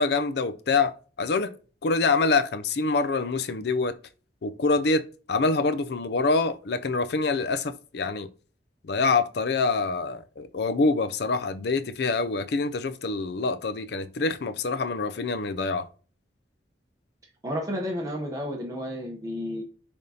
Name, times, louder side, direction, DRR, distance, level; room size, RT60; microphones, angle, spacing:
voice 1, 0.0-1.5 1.8-3.9 4.4-8.3 8.9-15.9, left 3 dB, 60° left, 0.5 m, -25 dB
voice 2, 17.4-19.6, equal, 20° right, 0.8 m, -31 dB
10.5 x 3.5 x 2.8 m
head